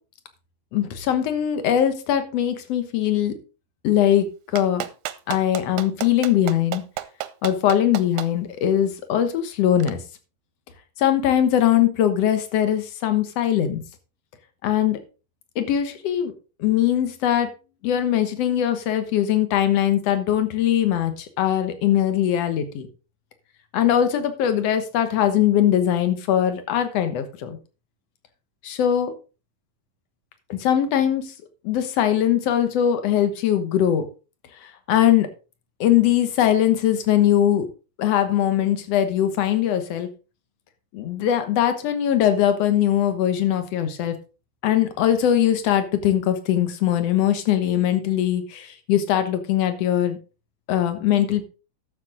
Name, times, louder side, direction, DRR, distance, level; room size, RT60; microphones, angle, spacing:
voice 1, 0.7-3.3 3.8-4.3 4.5-4.8 5.3-6.8 7.4-10.0 11.0-13.8 14.6-15.0 15.6-16.3 16.6-17.5 17.8-22.9 23.7-27.6 28.6-29.1 30.5-31.3 31.6-34.1 34.9-35.3 35.8-37.7 38.0-40.1 40.9-44.1 44.6-50.2 50.7-51.4, left 10 dB, 60° left, 9 dB, 1.9 m, -21 dB
Clapping, 4.6-8.3 9.8-9.9, right 13 dB, 80° right, 1.9 m, -31 dB
12.0 x 7.4 x 3.7 m, 0.33 s
omnidirectional pair, 3.9 m